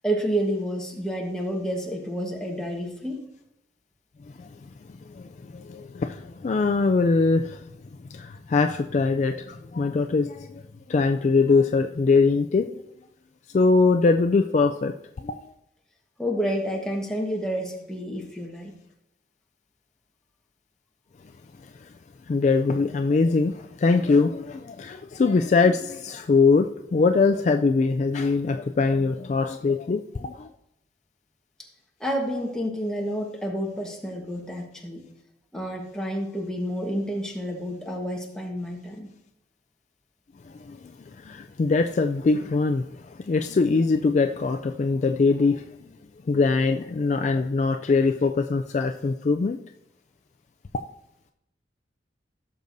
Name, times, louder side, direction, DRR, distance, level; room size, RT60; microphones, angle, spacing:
voice 1, 0.0-3.2 16.2-18.7 31.6-31.7 32.0-35.0 35.5-39.1, equal, 5° left, -1 dB, 1.2 m, -29 dB
voice 2, 5.1-7.6 8.1-10.6 10.9-12.8 13.5-14.9 15.2-15.4 21.8-21.9 22.3-30.5 40.6-40.8 41.2-42.9 43.1-45.8 46.3-49.6, left 4 dB, 40° left, 6 dB, 0.3 m, -22 dB
16.5 x 6.7 x 2.6 m, 0.83 s
head